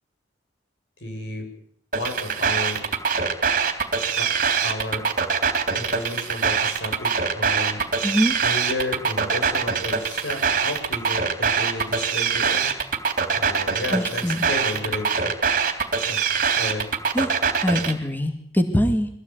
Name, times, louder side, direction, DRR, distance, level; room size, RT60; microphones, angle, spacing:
voice 1, 1.0-1.5 2.0-2.9 4.2-5.1 5.7-7.8 8.3-12.7 13.3-15.4 16.1-16.2 16.6-16.9, left 1 dB, 80° left, 4 dB, 7.9 m, -32 dB
sound 1, 1.9-17.9, right 6 dB, 50° right, 3.5 m, -23 dB
voice 2, 8.0-8.4 13.9-14.5 17.1-17.4 17.6-19.1, equal, 10° left, 6 dB, 2.2 m, -23 dB
24.0 x 17.5 x 9.5 m, 0.64 s
head